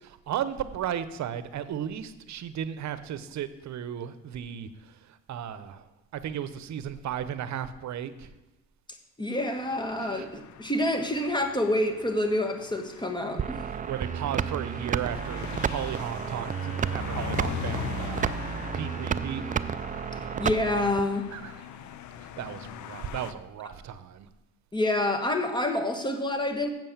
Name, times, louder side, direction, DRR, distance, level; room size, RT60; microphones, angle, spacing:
voice 1, 0.0-8.4 10.0-10.3 13.7-18.4 18.7-19.4 21.3-21.8 22.2-24.3, right 9 dB, 65° right, 0.8 m, -35 dB
voice 2, 9.2-13.6 20.4-21.3 24.7-26.7, left 1 dB, 15° left, 1.5 m, -27 dB
sound 1, 9.6-23.3, left 10 dB, 70° left, 0.6 m, -41 dB
sound 2, 13.4-21.0, right 7 dB, 30° right, 0.4 m, -31 dB
7.6 x 7.5 x 7.2 m
cardioid pair, 90°, 30 cm